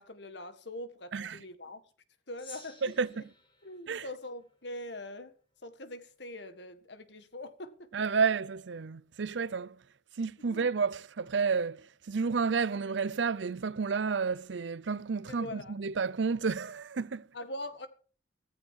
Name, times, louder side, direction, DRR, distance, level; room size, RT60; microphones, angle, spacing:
voice 1, 0.0-1.8 2.3-2.8 3.1-3.2 3.6-5.3 5.6-7.9 10.4-10.7 15.3-15.8 17.3-17.9, left 1 dB, 70° left, 1.7 m, -43 dB
Gong, 2.4-5.0, left 2 dB, 30° left, 4.6 m, -54 dB
voice 2, 7.9-9.8 10.2-17.3, right 5 dB, 80° right, 0.6 m, -31 dB
15.0 x 15.0 x 4.7 m
head